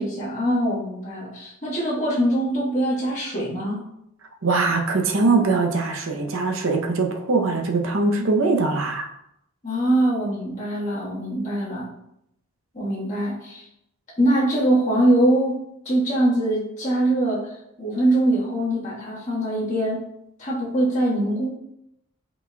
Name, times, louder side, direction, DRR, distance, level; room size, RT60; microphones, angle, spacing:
voice 1, 0.0-3.8 9.6-11.9 12.7-13.6 14.2-15.6 15.8-17.4 17.8-20.0 20.4-21.5, right 1 dB, 30° left, -7 dB, 1.5 m, -22 dB
voice 2, 4.4-9.1, right 3 dB, 60° right, 3 dB, 0.6 m, -22 dB
5.7 x 4.1 x 2.3 m, 0.79 s
head